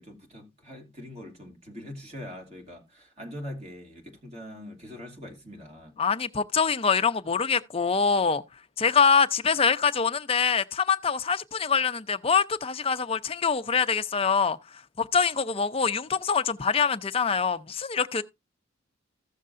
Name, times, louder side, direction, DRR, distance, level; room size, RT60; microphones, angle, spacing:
voice 1, 0.0-5.9, left 1 dB, 30° right, 2.3 m, -42 dB
voice 2, 6.0-8.4 8.8-14.6 15.0-18.2, left 5 dB, 30° left, 0.5 m, -24 dB
15.5 x 6.5 x 2.5 m
head